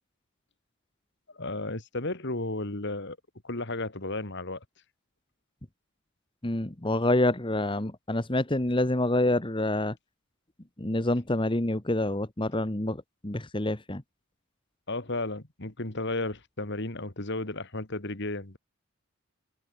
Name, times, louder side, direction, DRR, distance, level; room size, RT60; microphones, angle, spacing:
voice 1, 1.3-3.2 3.4-4.6 14.9-18.6, left 2 dB, 50° left, 2.4 m, -33 dB
voice 2, 6.4-9.9 10.8-14.0, left 1 dB, 20° left, 1.4 m, -27 dB
head